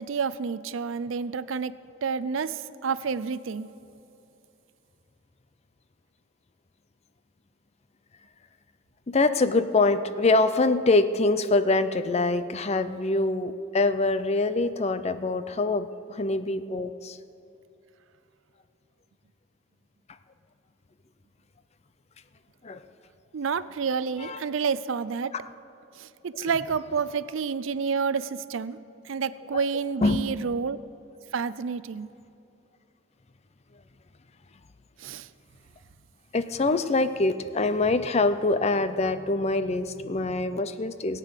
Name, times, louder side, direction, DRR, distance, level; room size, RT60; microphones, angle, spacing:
voice 1, 0.0-1.7 2.0-3.7 23.3-25.3 25.9-28.8 29.0-30.8 31.3-32.1 35.0-35.3, right 5 dB, 70° right, 16 dB, 0.4 m, -29 dB
voice 2, 9.1-17.2 22.6-22.8 24.2-24.4 26.4-26.5 30.0-30.2 36.3-41.2, left 2 dB, 30° left, 12 dB, 0.5 m, -24 dB
17.5 x 9.1 x 6.6 m, 2.8 s
head